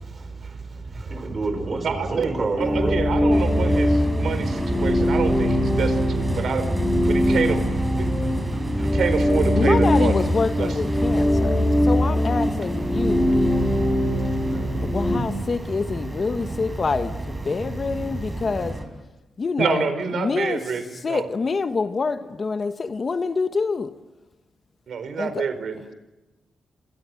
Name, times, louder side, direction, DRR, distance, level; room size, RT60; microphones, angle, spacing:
voice 1, 0.9-2.9 8.8-9.0 13.3-13.7 14.5-14.7, right 3 dB, 35° right, 5.0 m, -29 dB
voice 2, 1.8-6.7 7.1-7.6 8.0-8.1 8.9-10.3 10.6-10.8 19.6-21.3 24.9-25.8, right 6 dB, 70° right, 4.5 m, -27 dB
sound 1, 2.6-15.2, left 1 dB, 5° left, 3.2 m, -22 dB
sound 2, 3.3-18.9, right 1 dB, 15° right, 5.4 m, -31 dB
voice 3, 9.6-13.3 14.8-18.8 19.4-19.9 20.1-20.6 21.0-23.9 25.2-25.4, left 4 dB, 40° left, 1.2 m, -26 dB
28.5 x 27.0 x 7.7 m
wide cardioid pair, 120°, 0 cm